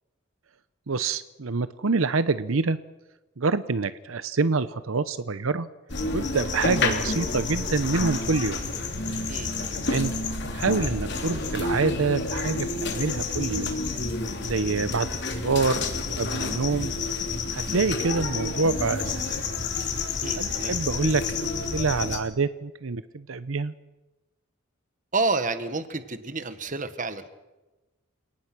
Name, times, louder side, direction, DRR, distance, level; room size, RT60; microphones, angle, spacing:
voice 1, 0.9-2.8 3.4-5.7 6.1-8.6 9.7-10.1 10.5-13.8 14.4-15.1 15.4-15.8 16.1-16.9 17.5-19.4 20.4-23.7, right 4 dB, 80° right, 14 dB, 0.8 m, -26 dB
sound 1, 5.9-22.2, left 3 dB, 55° left, 3.4 m, -29 dB
voice 2, 9.3-9.6 20.2-20.7 25.1-27.4, right 3 dB, 40° right, 11 dB, 1.5 m, -29 dB
29.5 x 18.5 x 6.1 m, 1.1 s
head